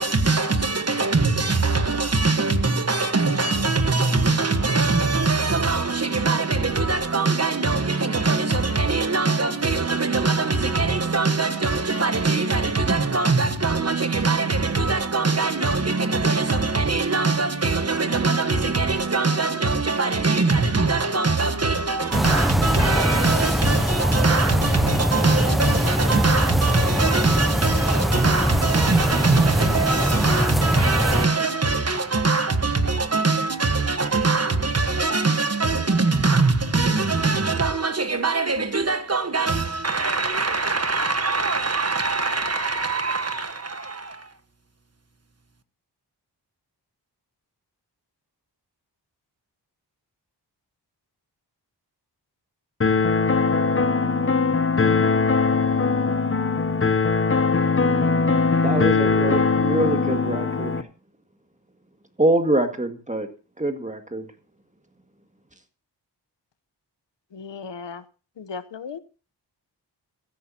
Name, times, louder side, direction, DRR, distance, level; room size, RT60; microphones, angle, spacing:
voice 1, 0.0-44.3, right 3 dB, 35° right, 1.3 m, -22 dB
sound 1, 22.1-31.3, equal, ahead, 0.6 m, -22 dB
sound 2, 52.8-60.8, left 4 dB, 30° left, 0.8 m, -21 dB
voice 2, 58.6-60.8 62.2-63.3 63.6-64.3, right 1 dB, 15° right, 1.9 m, -24 dB
voice 3, 67.3-68.0 68.4-69.0, left 5 dB, 85° left, 1.0 m, -36 dB
15.5 x 14.5 x 2.8 m
wide cardioid pair, 100°, 42 cm